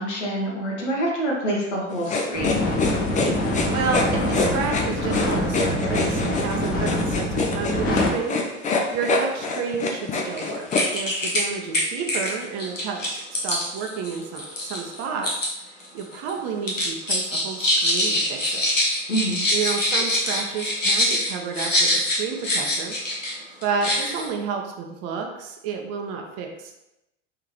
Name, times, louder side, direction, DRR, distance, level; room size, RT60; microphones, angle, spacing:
voice 1, 0.0-2.6 19.1-19.4, right 1 dB, 70° left, -3 dB, 1.5 m, -26 dB
sound 1, 2.0-10.8, left 3 dB, 20° left, 0.6 m, -25 dB
sound 2, 2.3-8.1, left 1 dB, 35° left, 1.4 m, -25 dB
voice 2, 3.7-10.7 10.9-15.3 15.6-18.6 19.5-23.0 23.6-26.8, right 5 dB, 40° right, 3 dB, 0.7 m, -30 dB
sound 3, 10.3-10.4 10.7-11.4 11.7-15.5 15.8-16.3 16.6-23.3 23.6-24.3, left 1 dB, 90° left, 1.1 m, -24 dB
3.7 x 3.7 x 3.1 m, 0.89 s
figure-of-eight pair, 75°, 37 cm